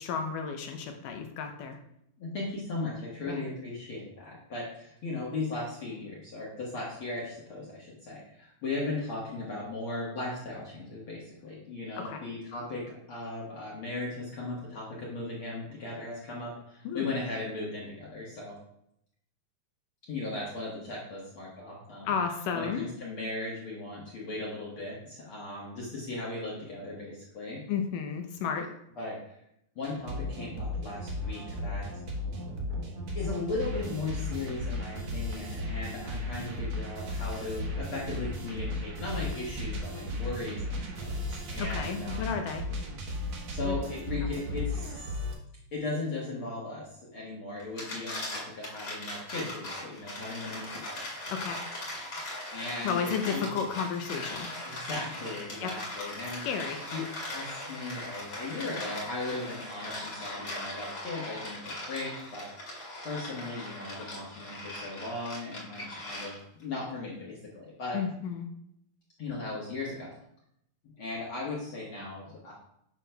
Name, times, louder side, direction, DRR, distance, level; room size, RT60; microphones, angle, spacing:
voice 1, 0.0-1.8 3.3-3.4 12.0-12.2 16.8-17.1 22.1-22.9 27.7-28.7 41.6-42.6 43.7-43.8 51.3-51.6 52.8-54.8 55.6-55.7 56.4-56.8 67.9-68.5, left 6 dB, 80° left, 5 dB, 2.2 m, -33 dB
voice 2, 2.2-18.5 20.1-22.1 22.5-27.6 29.0-29.4 29.7-31.8 33.1-42.4 43.5-45.1 45.7-51.0 52.5-53.6 54.6-56.4 56.9-62.5 63.0-68.0 69.2-70.1 71.0-72.5, left 2 dB, 55° left, -5 dB, 1.5 m, -37 dB
sound 1, 29.8-45.3, left 1 dB, 70° right, 1.3 m, -35 dB
sound 2, 47.6-66.6, left 1 dB, 35° left, 1.9 m, -39 dB
9.0 x 5.9 x 2.2 m, 0.75 s
omnidirectional pair, 4.0 m